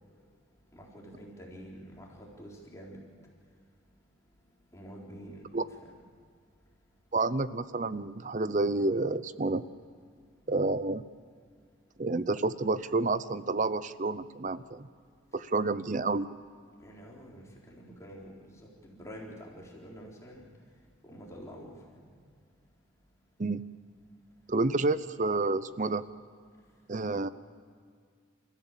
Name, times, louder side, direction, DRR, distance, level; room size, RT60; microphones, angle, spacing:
voice 1, 0.7-3.0 4.7-5.5 5.8-5.9 16.8-20.4 21.0-22.1, equal, 15° left, -3 dB, 4.0 m, -47 dB
voice 2, 7.1-9.6 10.5-11.0 12.0-14.9 15.3-16.3 23.4-23.6 24.5-26.0 26.9-27.3, right 3 dB, 40° right, 15 dB, 0.6 m, -29 dB
29.0 x 15.0 x 7.4 m, 2.1 s
head